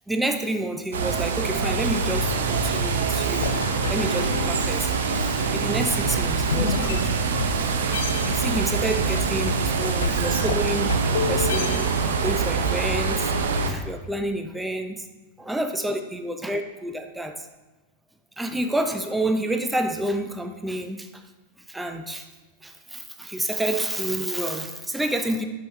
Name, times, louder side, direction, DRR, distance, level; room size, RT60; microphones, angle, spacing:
voice 1, 0.1-3.5 3.9-7.1 8.2-11.9 12.2-13.3 13.7-15.0 15.4-17.3 18.4-21.1 21.7-22.3 22.6-25.5, right 1 dB, 5° right, 5 dB, 0.6 m, -29 dB
sound 1, 0.9-13.7, right 4 dB, 65° right, 0.7 m, -24 dB
sound 2, 3.4-7.6 7.9-12.3, left 5 dB, 65° left, 0.6 m, -31 dB
9.6 x 6.0 x 3.3 m, 1.2 s
figure-of-eight pair, 90°, 0 cm